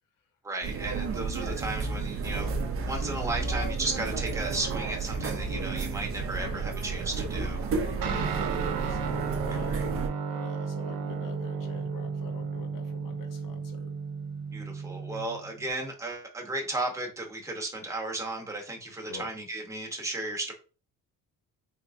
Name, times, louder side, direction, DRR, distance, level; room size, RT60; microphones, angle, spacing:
voice 1, 0.4-2.5 2.8-7.7 9.7-9.9 14.5-20.5, right 2 dB, 10° right, 0.8 m, -34 dB
sound 1, 0.6-10.1, right 4 dB, 40° right, 0.5 m, -32 dB
voice 2, 6.3-6.6 7.9-9.8 10.3-13.9 19.1-19.3, left 6 dB, 75° left, 0.8 m, -45 dB
Guitar, 8.0-15.7, right 5 dB, 90° right, 0.7 m, -34 dB
3.5 x 2.9 x 2.5 m
cardioid pair, 120°, 33 cm